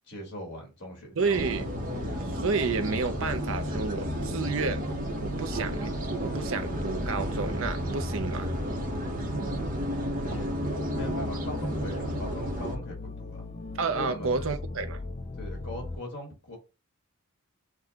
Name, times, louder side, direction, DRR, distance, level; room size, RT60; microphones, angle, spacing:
voice 1, 0.1-1.4 10.2-10.5 10.9-13.5 13.9-14.5 15.4-16.6, left 1 dB, 55° left, 2.1 m, -40 dB
sound 1, 1.2-16.0, left 3 dB, 30° left, 0.5 m, -38 dB
voice 2, 1.2-1.7 2.2-4.9 5.2-5.9 6.2-8.5 13.8-15.0, right 4 dB, 65° right, 0.6 m, -30 dB
sound 2, 1.3-12.8, right 1 dB, 40° right, 0.9 m, -33 dB
6.0 x 2.3 x 3.6 m
head